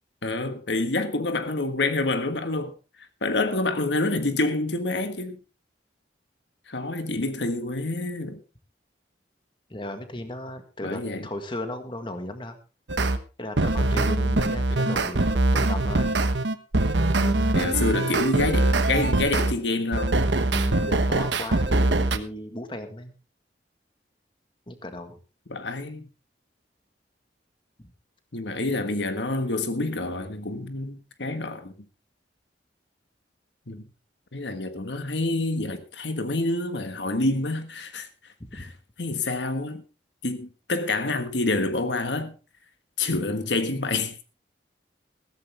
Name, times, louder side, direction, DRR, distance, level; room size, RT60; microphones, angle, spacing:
voice 1, 0.2-2.7 3.2-5.4 6.7-8.4 10.8-11.3 17.5-20.2 25.5-26.1 28.3-31.7 33.7-33.8 34.3-38.1 38.5-38.7 39.0-39.8 40.2-42.3 43.0-44.1, left 2 dB, 80° left, 1.6 m, -27 dB
voice 2, 9.7-12.6 13.4-16.2 17.2-17.9 20.5-23.1 24.7-25.2 27.8-27.9 38.4-38.7, left 1 dB, 30° left, 1.8 m, -36 dB
sound 1, 12.9-13.2 13.6-19.5 19.9-22.2, right 2 dB, 85° right, 1.2 m, -23 dB
15.5 x 14.0 x 3.4 m
head